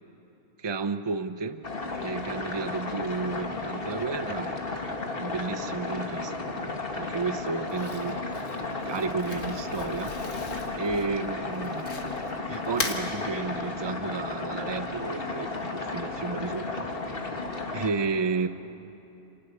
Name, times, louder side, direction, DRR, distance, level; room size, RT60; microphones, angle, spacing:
voice 1, 0.6-1.6 2.0-4.5 5.2-8.5 8.8-10.2 10.7-11.9 12.5-16.9 17.7-18.5, right 4 dB, 40° right, 11 dB, 0.3 m, -32 dB
sound 1, 1.6-17.9, left 3 dB, 35° left, 1.9 m, -34 dB
Crumpling crinkling, 7.7-12.3 12.6-13.0, left 3 dB, 70° left, 2.5 m, -37 dB
29.0 x 28.0 x 6.8 m, 3.0 s
omnidirectional pair, 1.7 m